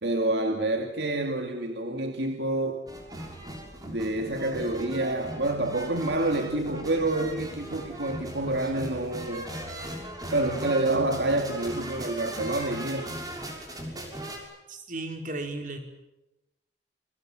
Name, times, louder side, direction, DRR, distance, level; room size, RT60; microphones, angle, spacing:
voice 1, 0.0-2.8 3.9-9.5 10.3-13.2, right 2 dB, 65° right, 2.5 m, -28 dB
sound 1, 2.9-14.4, right 1 dB, 20° right, 6.3 m, -38 dB
voice 2, 14.7-15.8, right 2 dB, 45° right, 5.3 m, -35 dB
29.5 x 24.0 x 7.7 m
head